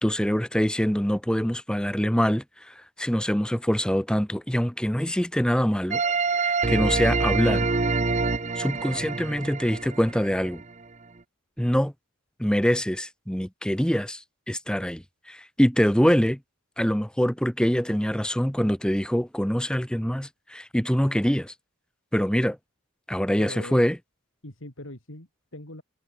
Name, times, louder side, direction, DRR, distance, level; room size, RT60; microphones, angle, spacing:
voice 1, 0.0-6.0 6.4-7.7 8.6-10.6 11.6-11.9 12.4-16.4 16.8-21.5 22.1-22.6 23.1-24.0, equal, 5° left, 1.2 m, -24 dB
sound 1, 5.9-10.7, right 3 dB, 35° right, 0.9 m, -26 dB
voice 2, 23.4-23.8 24.4-25.8, left 1 dB, 65° left, 4.3 m, -41 dB
head